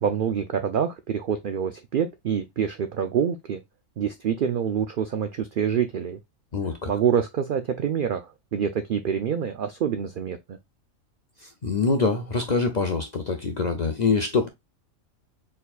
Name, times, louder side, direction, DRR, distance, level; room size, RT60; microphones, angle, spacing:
voice 1, 0.0-3.6 4.0-6.2 6.9-10.6, right 8 dB, 70° right, 0.5 m, -26 dB
voice 2, 6.5-6.9 11.4-14.5, left 4 dB, 50° left, 0.5 m, -25 dB
4.3 x 3.7 x 2.3 m
omnidirectional pair, 1.4 m